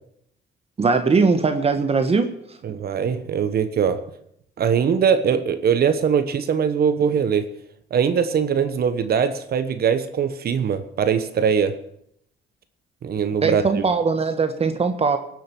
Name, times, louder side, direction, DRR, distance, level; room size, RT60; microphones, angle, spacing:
voice 1, 0.8-2.3 13.4-15.2, right 4 dB, 35° right, 8 dB, 1.2 m, -20 dB
voice 2, 2.6-4.0 4.6-7.4 7.9-11.8 13.0-13.8, right 7 dB, 55° right, 10 dB, 1.3 m, -21 dB
18.0 x 7.7 x 7.1 m, 0.72 s
cardioid pair, 105°, 19 cm